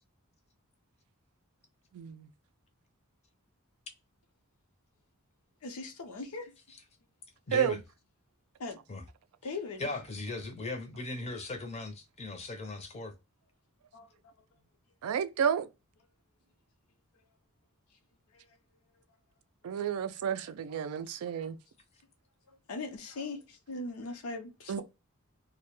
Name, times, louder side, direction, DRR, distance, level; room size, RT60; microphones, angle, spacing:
voice 1, 1.9-2.3 7.5-7.8 15.0-15.7 19.6-21.6 24.7-24.8, right 8 dB, 75° right, 0.3 m, -31 dB
voice 2, 5.6-6.5 8.6-8.8 9.4-9.9 13.9-14.3 18.3-18.4 19.7-19.8 21.1-21.2 22.5-24.8, left 3 dB, 85° left, 0.6 m, -40 dB
voice 3, 7.5-7.8 8.9-9.0 9.8-13.1, left 2 dB, 30° left, 0.5 m, -38 dB
2.1 x 2.1 x 3.0 m
head